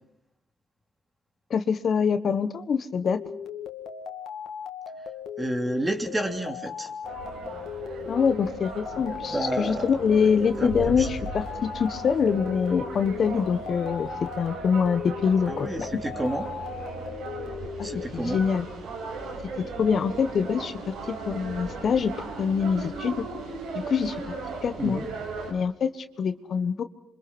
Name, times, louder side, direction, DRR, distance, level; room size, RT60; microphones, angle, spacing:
voice 1, 1.5-3.2 8.1-15.9 18.1-18.7 19.8-22.1 22.4-23.2 23.9-24.1 24.6-25.0 25.5-26.8, left 6 dB, 55° left, 10 dB, 1.4 m, -25 dB
sound 1, 3.0-18.1, left 7 dB, 70° left, 2.4 m, -38 dB
voice 2, 5.4-6.9 9.3-9.9 10.6-11.1 15.5-16.5 17.8-18.4 24.8-25.1, right 1 dB, 20° right, 4 dB, 3.2 m, -30 dB
sound 2, 7.0-25.5, right 3 dB, 85° right, 7.8 m, -37 dB
28.0 x 25.0 x 6.2 m, 0.77 s
cardioid pair, 90°, 0 cm